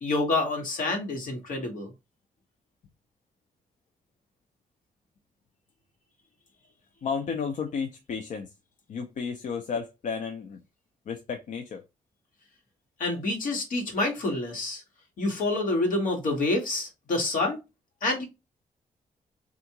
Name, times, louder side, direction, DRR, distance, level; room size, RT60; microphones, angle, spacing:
voice 1, 0.0-1.9 13.0-14.8 15.2-17.6 18.0-18.3, left 2 dB, 85° left, 1.3 m, -27 dB
voice 2, 7.0-8.5 8.9-10.6 11.1-11.8, left 6 dB, 65° left, 0.5 m, -32 dB
3.5 x 2.4 x 2.8 m
wide cardioid pair, 125°, 14 cm